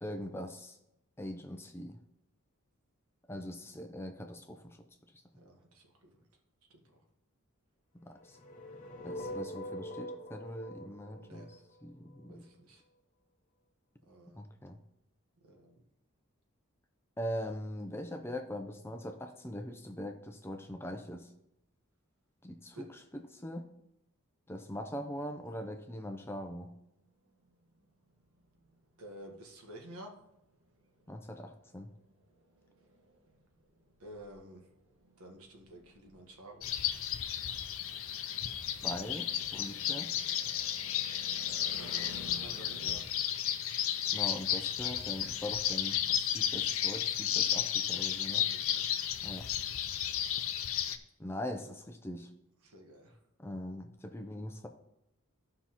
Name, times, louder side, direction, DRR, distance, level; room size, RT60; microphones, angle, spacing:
voice 1, 0.0-0.8 1.2-2.0 3.3-4.8 8.0-8.4 9.0-12.5 14.4-14.8 17.2-21.3 22.4-23.7 24.5-26.7 31.1-31.9 38.8-40.1 44.1-48.5 49.2-49.5 51.2-52.3 53.4-54.7, equal, 10° left, 5 dB, 0.5 m, -42 dB
voice 2, 5.4-5.8 6.7-6.8 11.2-11.5 12.3-12.8 14.1-14.4 15.5-15.7 22.7-22.9 29.0-30.1 34.0-34.6 35.2-36.7 41.4-43.1 48.1-48.8 52.6-53.2, right 1 dB, 85° right, 2 dB, 1.4 m, -51 dB
sound 1, 8.2-12.3, equal, 35° left, 0.9 m, -44 dB
sound 2, 26.9-43.0, equal, 65° right, 1.3 m, -55 dB
sound 3, 36.6-51.0, left 10 dB, 70° left, 0.6 m, -33 dB
13.5 x 5.6 x 2.9 m, 0.83 s
head